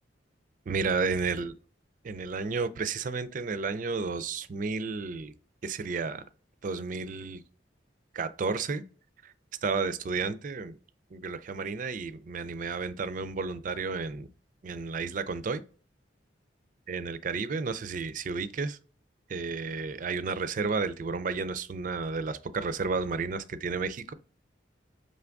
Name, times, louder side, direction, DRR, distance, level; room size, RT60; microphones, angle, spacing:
voice 1, 0.7-1.6 2.0-5.3 5.6-6.2 6.6-7.4 8.1-8.9 9.2-9.3 9.6-10.7 11.1-14.3 14.6-15.6 16.9-18.8 19.3-24.1, right 4 dB, 45° right, 0.4 m, -32 dB
5.2 x 3.4 x 2.5 m
head